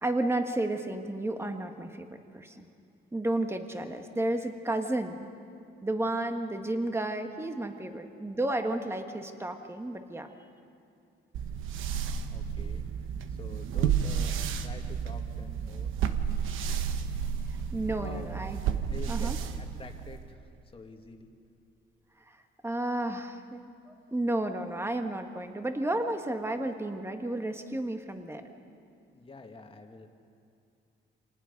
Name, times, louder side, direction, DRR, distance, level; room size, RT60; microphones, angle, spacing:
voice 1, 0.0-2.6 3.1-5.3 5.8-10.3 17.7-18.6 19.1-19.4 22.3-22.4 22.6-28.5, right 1 dB, 10° right, 6 dB, 1.6 m, -32 dB
sound 1, 11.3-20.3, right 8 dB, 85° right, 1.0 m, -32 dB
voice 2, 12.3-12.8 13.3-15.9 17.9-18.3 18.9-19.3 19.6-20.4 20.7-21.3 29.1-30.1, left 3 dB, 25° left, 4 dB, 1.9 m, -47 dB
26.5 x 19.0 x 5.3 m, 2.4 s
cardioid pair, 90°, 20 cm